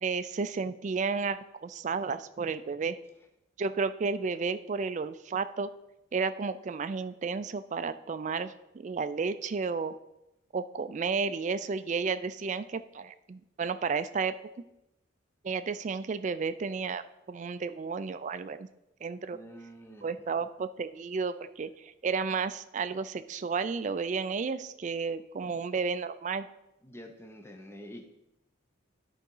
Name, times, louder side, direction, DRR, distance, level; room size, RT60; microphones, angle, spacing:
voice 1, 0.0-3.0 3.6-5.7 6.1-9.9 10.5-14.3 15.4-18.7 19.0-19.4 20.0-26.5, right 5 dB, 35° right, 12 dB, 0.3 m, -32 dB
voice 2, 19.3-20.1 25.4-25.7 26.8-28.1, equal, 10° left, 4 dB, 0.7 m, -47 dB
9.9 x 3.9 x 5.4 m, 0.88 s
head